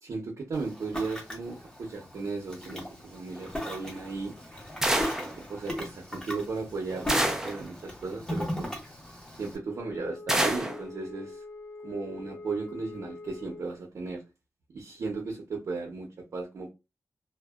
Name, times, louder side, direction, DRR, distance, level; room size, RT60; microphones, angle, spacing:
voice 1, 0.0-4.3 5.5-8.7 9.4-11.4 11.8-14.2 14.7-16.7, right 3 dB, 75° right, 0.6 m, -35 dB
Ocean, 0.5-9.6, left 1 dB, 10° left, 0.8 m, -38 dB
sound 1, 4.8-5.3 7.1-7.6 10.3-10.8, right 1 dB, 10° right, 0.3 m, -26 dB
Wind instrument woodwind instrument, 9.6-13.8, left 3 dB, 65° left, 0.7 m, -45 dB
2.5 x 2.1 x 2.3 m
wide cardioid pair, 160°, 5 cm